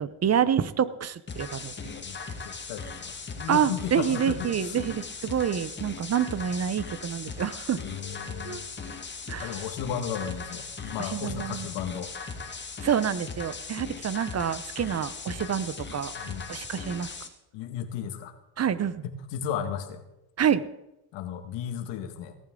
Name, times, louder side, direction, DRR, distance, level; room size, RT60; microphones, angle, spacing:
voice 1, 0.0-1.7 3.5-7.8 8.4-8.6 9.3-9.6 11.0-11.7 12.8-16.1 16.5-17.1 18.6-19.0 20.4-20.6, right 8 dB, 35° right, 15 dB, 0.8 m, -27 dB
sound 1, 1.3-17.3, left 4 dB, 25° left, 1.9 m, -39 dB
voice 2, 1.8-2.2 2.4-4.8 7.8-8.6 9.4-12.1 16.2-16.5 17.5-18.3 19.0-20.0 21.1-22.4, left 8 dB, 80° left, 8 dB, 1.8 m, -35 dB
18.0 x 12.0 x 3.8 m, 0.89 s
supercardioid pair, 90°, 43 cm